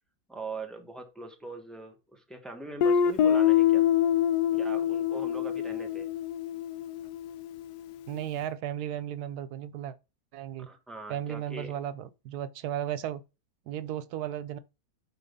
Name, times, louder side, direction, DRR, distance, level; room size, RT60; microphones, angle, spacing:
voice 1, 0.3-3.9 4.5-6.1 10.6-11.8, right 3 dB, ahead, 1.3 m, -42 dB
Guitar, 2.8-7.5, left 9 dB, 90° left, 1.2 m, -25 dB
voice 2, 8.1-10.0 10.3-10.7 11.1-13.2 13.7-14.6, right 10 dB, 85° right, 1.2 m, -35 dB
5.9 x 4.6 x 5.3 m
omnidirectional pair, 1.6 m